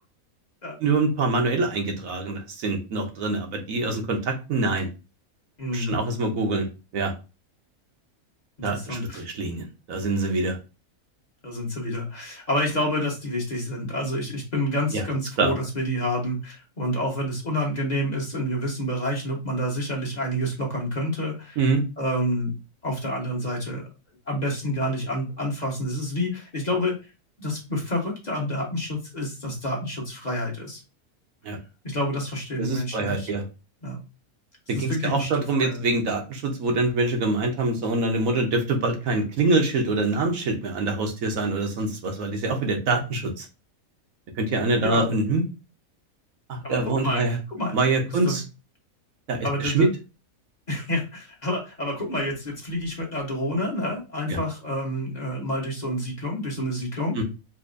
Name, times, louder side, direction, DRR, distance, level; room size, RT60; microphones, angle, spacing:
voice 1, 0.8-4.9 5.7-7.1 8.6-10.6 14.9-15.0 15.4-15.5 21.6-21.8 31.4-31.6 32.6-33.4 34.7-43.5 44.3-45.4 46.5-47.4 47.7-48.4 49.3-49.9 54.3-54.4 57.1-57.2, right 3 dB, 75° right, 3 dB, 1.3 m, -25 dB
voice 2, 5.6-6.0 8.6-9.3 11.4-21.6 22.0-22.5 22.8-23.9 24.3-27.1 27.4-30.8 31.8-33.3 33.8-34.0 34.7-35.8 44.8-45.1 46.6-47.8 48.1-48.4 49.4-49.9 50.7-57.2, equal, 35° left, -1 dB, 1.2 m, -28 dB
4.2 x 2.8 x 2.5 m, 0.30 s
omnidirectional pair, 1.5 m